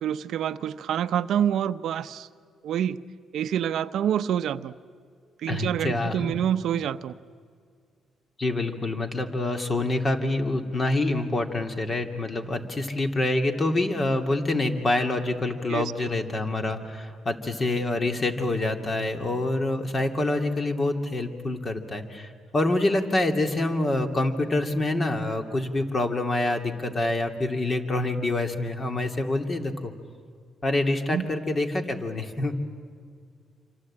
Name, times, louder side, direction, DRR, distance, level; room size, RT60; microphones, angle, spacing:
voice 1, 0.0-2.3 2.6-3.0 3.3-4.7 5.4-7.2 15.7-16.1 31.1-31.3, right 9 dB, 75° right, 13 dB, 0.7 m, -27 dB
voice 2, 5.5-6.3 8.4-29.9 30.6-32.5, left 2 dB, 35° left, 5 dB, 2.7 m, -26 dB
27.0 x 25.0 x 8.8 m, 2.1 s
cardioid pair, 90°, 0 cm